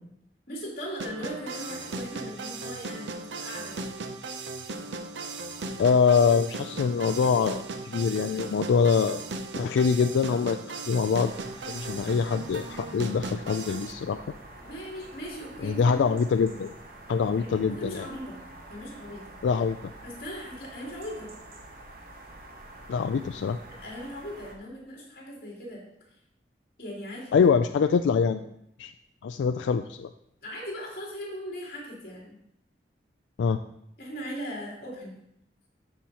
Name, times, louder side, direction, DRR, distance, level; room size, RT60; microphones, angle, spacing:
voice 1, 0.5-3.8 14.5-16.1 17.3-18.4 18.7-19.3 20.0-21.3 23.7-25.8 26.8-27.5 30.4-32.3 34.0-35.1, equal, 55° left, -5 dB, 3.4 m, -39 dB
sound 1, 1.0-13.9, right 3 dB, 85° right, 0.6 m, -37 dB
voice 2, 5.8-9.2 9.6-10.6 10.9-11.3 11.7-14.2 15.6-16.7 17.1-18.1 19.4-19.8 22.9-23.6 27.3-28.5 28.8-28.9 29.2-30.1 33.4-33.6, left 6 dB, 90° left, 8 dB, 0.3 m, -24 dB
sound 2, 11.2-24.6, right 2 dB, 50° right, 1.1 m, -47 dB
13.5 x 5.6 x 2.9 m, 0.77 s
head